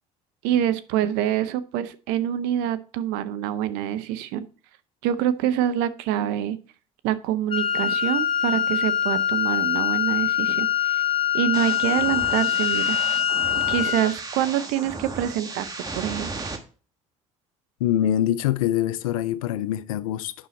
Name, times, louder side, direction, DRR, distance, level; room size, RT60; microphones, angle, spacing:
voice 1, 0.4-4.4 5.0-6.6 7.0-10.7 10.9-11.0 11.3-13.0 13.7-15.7 15.9-16.5, right 11 dB, 70° right, 0.7 m, -25 dB
Wind instrument woodwind instrument, 7.5-14.2, left 10 dB, 30° left, 1.1 m, -24 dB
sound 1, 11.5-16.6, right 3 dB, 20° right, 1.3 m, -35 dB
voice 2, 17.8-20.3, left 11 dB, 85° left, 0.5 m, -24 dB
8.5 x 5.5 x 4.2 m
hypercardioid pair, 65°, 17 cm